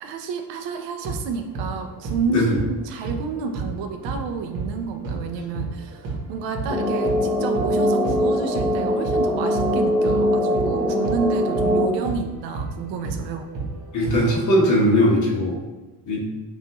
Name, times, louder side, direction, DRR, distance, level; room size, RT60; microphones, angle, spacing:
voice 1, 0.0-13.5, right 5 dB, 80° right, 6 dB, 0.6 m, -30 dB
sound 1, 1.0-8.8 9.0-14.8, right 3 dB, 45° right, 1.1 m, -32 dB
sound 2, 6.7-11.9, equal, ahead, 0.9 m, -22 dB
voice 2, 13.9-15.6 16.1-16.2, equal, 45° left, -3 dB, 1.3 m, -19 dB
5.4 x 2.6 x 2.9 m, 1.1 s
cardioid pair, 140°, 43 cm